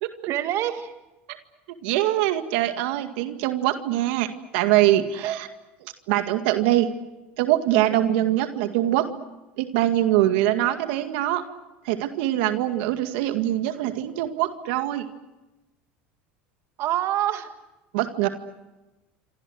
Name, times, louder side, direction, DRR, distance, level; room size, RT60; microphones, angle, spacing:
voice 1, 0.3-0.9 5.1-5.4 16.8-17.5, right 12 dB, 55° right, 8 dB, 2.0 m, -26 dB
voice 2, 1.8-5.5 6.1-6.9 7.4-9.1 9.6-11.4 11.9-15.1 17.9-18.3, right 14 dB, 75° right, 7 dB, 2.0 m, -23 dB
27.5 x 26.5 x 6.4 m, 1.0 s
supercardioid pair, 105°, 6 cm